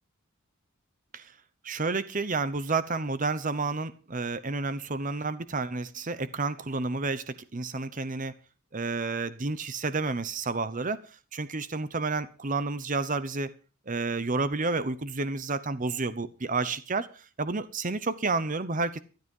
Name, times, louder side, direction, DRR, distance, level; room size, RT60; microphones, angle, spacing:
voice 1, 1.6-8.3 8.7-11.0 11.3-13.5 13.9-19.0, right 3 dB, 35° right, 14 dB, 0.9 m, -30 dB
13.0 x 12.5 x 5.5 m, 0.35 s
head